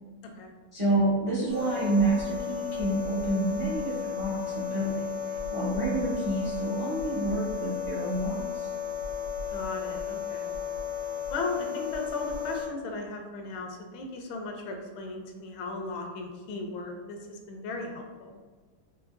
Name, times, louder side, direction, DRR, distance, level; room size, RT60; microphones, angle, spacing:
voice 1, 0.7-8.7, right 2 dB, 45° right, -7 dB, 0.4 m, -29 dB
sound 1, 1.5-12.7, left 7 dB, 70° right, 1.9 m, -34 dB
voice 2, 9.5-10.5 11.3-18.3, left 3 dB, 80° left, 3 dB, 1.4 m, -36 dB
4.8 x 2.8 x 2.5 m, 1.3 s
omnidirectional pair, 2.2 m